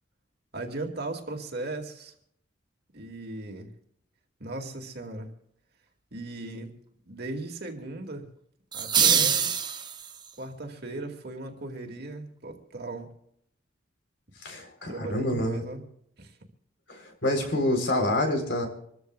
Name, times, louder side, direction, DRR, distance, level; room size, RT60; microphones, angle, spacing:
voice 1, 0.5-2.1 2.9-3.7 4.4-5.3 6.1-6.7 7.1-8.3 8.7-9.5 10.4-13.1 14.9-15.8 16.2-16.4, right 2 dB, 50° right, 3 dB, 2.3 m, -37 dB
sound 1, 8.7-10.3, right 7 dB, 20° right, 0.8 m, -24 dB
voice 2, 14.4-15.6 16.9-18.7, left 1 dB, 60° left, 4 dB, 4.0 m, -27 dB
26.5 x 14.0 x 2.4 m, 0.70 s
head